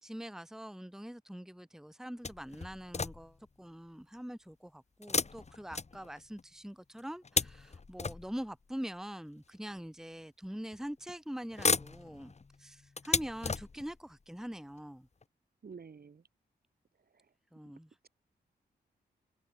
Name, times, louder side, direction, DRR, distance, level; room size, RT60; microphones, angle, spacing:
voice 1, 0.0-12.3 12.6-15.1 17.5-17.9, equal, 5° right, 1.6 m, -44 dB
sound 1, 2.2-3.5 5.0-6.4 7.0-8.6 9.5-9.6 10.7-11.1 11.4-14.1 14.8-14.9 15.2-15.3, left 4 dB, 40° left, 1.2 m, -35 dB
voice 2, 15.6-16.2, right 5 dB, 60° right, 3.8 m, -48 dB
supercardioid pair, 45°, 18 cm